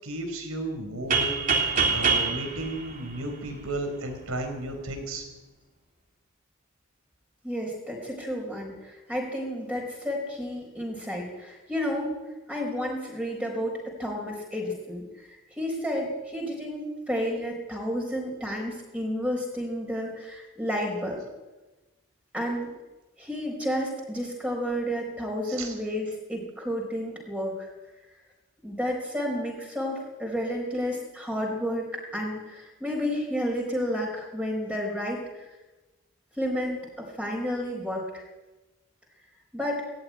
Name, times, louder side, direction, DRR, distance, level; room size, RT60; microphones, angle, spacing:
voice 1, 0.0-5.2 25.4-25.7, right 1 dB, 85° right, 5 dB, 5.0 m, -34 dB
sound 1, 1.1-3.9, right 5 dB, 40° right, 3.2 m, -25 dB
voice 2, 7.4-12.1 12.5-21.2 22.3-22.7 23.2-27.7 28.6-35.5 36.4-38.2 39.5-39.8, equal, 5° right, -1 dB, 4.5 m, -31 dB
18.5 x 14.5 x 9.7 m, 1.1 s
head